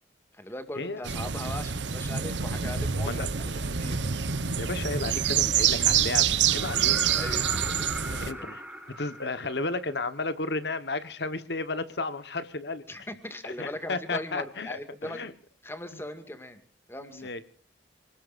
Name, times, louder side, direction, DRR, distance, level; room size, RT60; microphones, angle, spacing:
voice 1, 0.4-3.5 3.8-4.0 7.1-8.5 12.9-15.2 15.6-16.6 16.9-17.3, left 1 dB, 15° left, 8 dB, 2.1 m, -40 dB
sound 1, 1.0-8.3, right 8 dB, 80° right, 1.1 m, -27 dB
voice 2, 4.6-7.0 8.3-8.6 8.9-12.8 13.4-15.3 17.1-17.4, left 3 dB, 70° left, 12 dB, 1.3 m, -33 dB
sound 2, 6.5-10.3 12.2-12.3, right 1 dB, 5° right, 1.9 m, -39 dB
28.0 x 19.5 x 2.6 m, 0.44 s
head